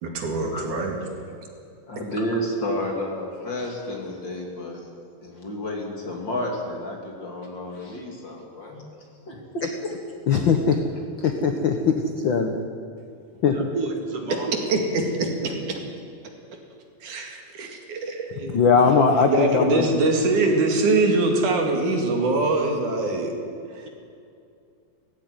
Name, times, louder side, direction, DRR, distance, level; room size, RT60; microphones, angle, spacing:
voice 1, 0.0-1.0 14.7-15.5 17.0-18.6 19.3-23.3 23.7-23.9, right 2 dB, 65° right, 2 dB, 3.7 m, -23 dB
voice 2, 1.9-4.8 5.2-8.8 9.3-9.7 11.2-11.3, left 1 dB, 35° left, 1 dB, 3.0 m, -31 dB
voice 3, 10.3-10.8 11.2-12.0 12.2-12.6 13.4-13.7 18.5-19.8, left 5 dB, 75° left, 5 dB, 1.1 m, -19 dB
voice 4, 13.5-14.6 15.2-15.5, right 3 dB, 50° right, 3 dB, 2.6 m, -31 dB
17.5 x 15.5 x 9.7 m, 2.4 s
omnidirectional pair, 3.8 m